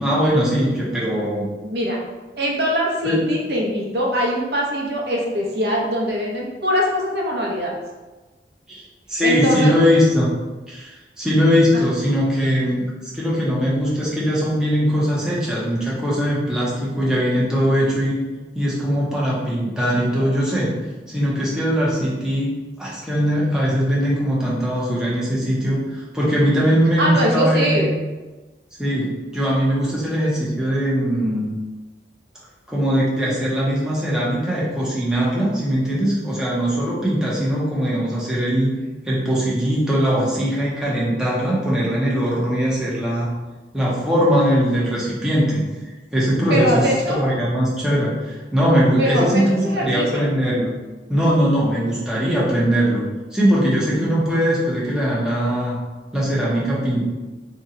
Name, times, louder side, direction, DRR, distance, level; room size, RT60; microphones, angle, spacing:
voice 1, 0.0-1.5 3.0-3.2 8.7-8.8 9.1-10.3 10.7-12.8 13.1-18.2 18.5-20.7 21.1-22.5 22.8-27.9 28.8-31.5 32.7-38.8 39.0-43.3 43.7-45.6 46.1-50.7 51.1-55.8 56.1-57.1, equal, 5° right, -7 dB, 0.6 m, -20 dB
voice 2, 1.6-2.0 2.4-7.8 9.2-9.7 11.7-11.8 27.0-27.9 46.5-47.2 49.0-50.2, equal, 60° right, -2 dB, 0.7 m, -22 dB
2.8 x 2.1 x 3.7 m, 1.2 s
head